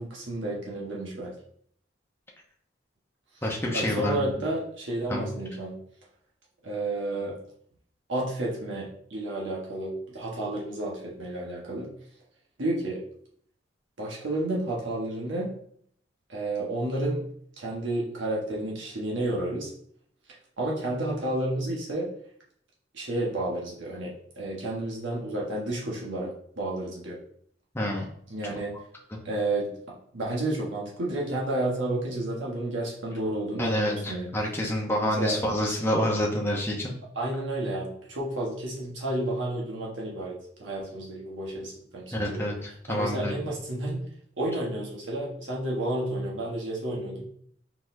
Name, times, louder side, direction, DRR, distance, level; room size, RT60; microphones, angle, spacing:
voice 1, 0.0-1.3 3.7-5.8 6.6-7.4 8.1-11.9 12.6-13.0 14.0-15.5 16.3-17.3 17.6-19.7 20.6-22.1 22.9-27.2 28.3-28.7 29.2-34.3 35.0-35.4 37.1-42.4 42.9-44.0 44.4-47.2, right 1 dB, 75° right, -3 dB, 1.3 m, -31 dB
voice 2, 3.4-4.5 5.1-5.4 27.7-28.1 29.1-29.2 33.6-36.9 42.1-43.4, equal, 10° left, -1 dB, 0.8 m, -28 dB
4.7 x 4.1 x 2.7 m, 0.64 s
head